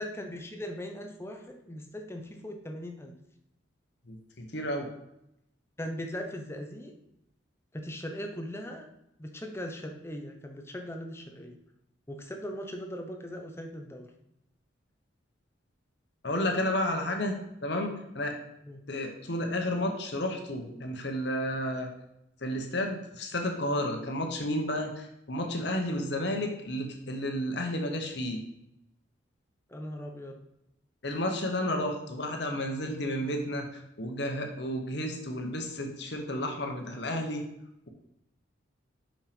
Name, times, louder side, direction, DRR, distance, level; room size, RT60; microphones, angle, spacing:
voice 1, 0.0-3.2 5.8-6.9 7.7-8.9 9.2-11.6 12.1-14.1 18.6-18.8 29.7-30.4, equal, 15° left, 3 dB, 0.8 m, -39 dB
voice 2, 4.1-4.9 16.2-18.3 18.9-21.9 22.4-28.4 31.0-37.4, left 1 dB, 60° left, 3 dB, 1.1 m, -32 dB
5.7 x 5.6 x 5.2 m, 0.82 s
head